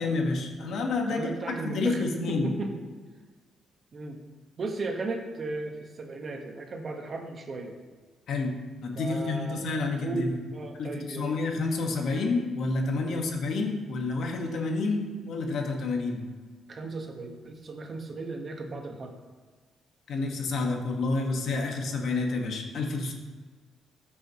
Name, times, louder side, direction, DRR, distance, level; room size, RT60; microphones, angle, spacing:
voice 1, 0.0-1.3 1.6-2.5 8.3-10.3 10.8-16.2 20.1-23.1, left 3 dB, 70° left, 1 dB, 1.6 m, -29 dB
voice 2, 1.1-3.0 3.9-4.2 4.6-7.8 9.0-9.6 10.0-11.4 13.1-13.2 16.7-19.1, right 3 dB, 45° right, 3 dB, 1.4 m, -36 dB
13.5 x 6.3 x 3.1 m, 1.5 s
cardioid pair, 90°, 0 cm